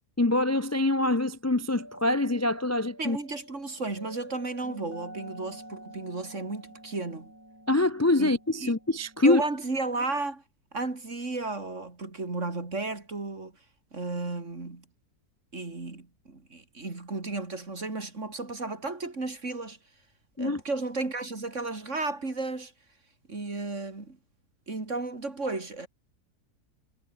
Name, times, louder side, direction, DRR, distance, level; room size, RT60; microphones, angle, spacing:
voice 1, 0.2-3.2 7.7-9.4 20.4-20.6, left 2 dB, 20° left, 0.5 m, -25 dB
sound 1, 1.8-10.2, right 1 dB, 10° right, 2.9 m, -48 dB
voice 2, 3.0-7.3 8.2-8.7 9.2-10.4 10.7-13.5 13.9-14.8 15.5-19.8 20.4-22.7 23.3-24.2 24.7-25.9, right 3 dB, 50° right, 3.8 m, -33 dB
omnidirectional pair, 1.7 m